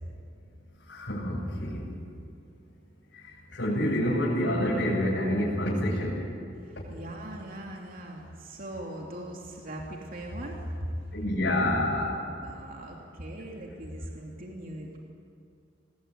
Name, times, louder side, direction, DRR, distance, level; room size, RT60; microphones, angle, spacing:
voice 1, 0.9-1.9 3.1-6.2 11.1-12.2, left 1 dB, 70° left, -8 dB, 8.0 m, -28 dB
voice 2, 6.7-11.0 12.4-15.0, right 1 dB, 50° right, 0 dB, 3.1 m, -39 dB
26.0 x 20.5 x 9.7 m, 2.5 s
head